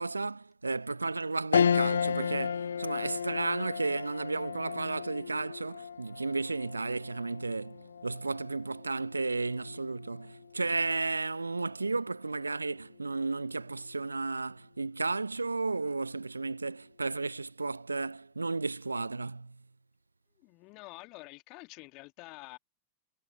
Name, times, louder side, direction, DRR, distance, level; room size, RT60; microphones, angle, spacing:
voice 1, 0.0-19.6, right 3 dB, 85° right, 0.9 m, -33 dB
sound 1, 1.5-11.1 11.6-11.7 13.0-13.5, left 7 dB, 75° left, 0.4 m, -34 dB
voice 2, 20.4-22.6, left 25 dB, 45° left, 2.1 m, -48 dB
figure-of-eight pair, 90°, 0 cm